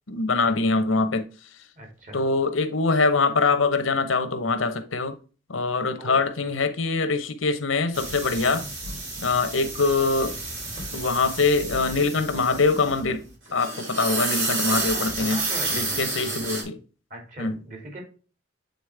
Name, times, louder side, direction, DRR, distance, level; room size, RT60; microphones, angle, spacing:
voice 1, 0.1-1.3 2.1-5.2 5.5-8.6 9.2-10.4 10.9-13.2 13.5-15.4 15.7-16.8 17.4-17.6, left 3 dB, 90° left, 0.9 m, -23 dB
voice 2, 1.8-2.2 6.0-6.2 8.4-8.7 14.9-16.7 17.1-18.0, right 1 dB, 40° right, 2.7 m, -40 dB
sound 1, 7.9-13.2 13.5-16.6, right 3 dB, 80° right, 3.9 m, -30 dB
8.2 x 4.1 x 3.4 m
head